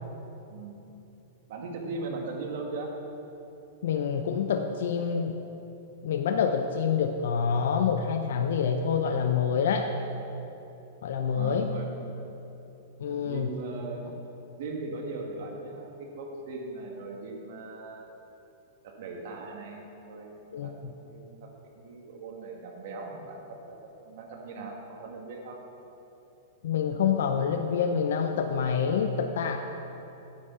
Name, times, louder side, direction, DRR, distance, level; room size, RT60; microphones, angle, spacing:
voice 1, 1.5-2.9 11.3-12.2 13.1-14.1 14.6-18.1 18.8-21.5 21.7-23.8 24.0-25.6, right 3 dB, 60° right, 0 dB, 1.9 m, -39 dB
voice 2, 3.8-5.4 6.0-9.9 11.0-11.7 13.0-13.5 20.5-20.9 26.6-29.6, left 6 dB, 75° left, 5 dB, 0.6 m, -27 dB
9.8 x 6.3 x 7.0 m, 3.0 s
supercardioid pair, 150°, 0 cm